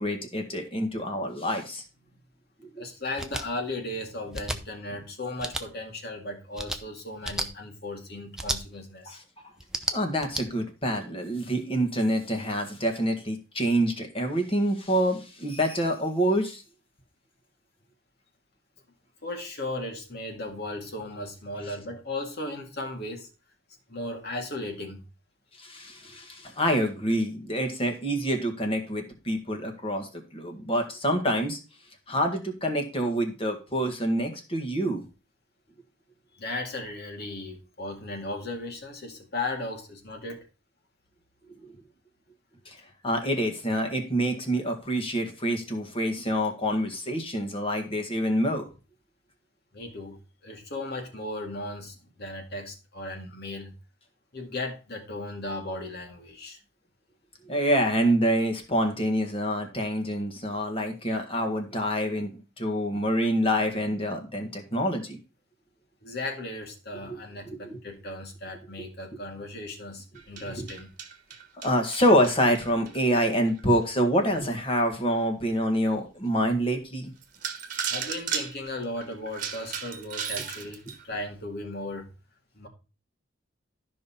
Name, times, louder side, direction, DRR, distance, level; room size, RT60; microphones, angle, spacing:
voice 1, 0.0-1.8 9.1-9.2 9.9-16.6 25.6-31.6 32.1-35.0 41.6-41.7 42.7-42.8 43.0-48.7 57.5-65.2 67.1-67.2 67.5-67.8 70.6-70.7 71.6-77.1, equal, 30° left, 4 dB, 1.8 m, -26 dB
voice 2, 2.8-9.2 19.2-23.3 23.9-25.0 36.3-40.5 49.7-53.7 54.3-56.6 66.0-70.9 77.9-82.1 82.5-82.7, left 2 dB, 55° left, 3 dB, 2.1 m, -36 dB
sound 1, 3.2-3.4 4.3-4.6 5.4-5.6 6.5-6.8 7.2-7.5 8.4-8.6 9.6-10.4, right 1 dB, 5° right, 0.7 m, -31 dB
sound 2, 70.2-73.6 74.2-74.3 74.8-74.9 75.5-75.6 76.7-76.8 77.2-81.0, right 7 dB, 40° right, 1.3 m, -35 dB
13.0 x 5.5 x 4.3 m, 0.32 s
head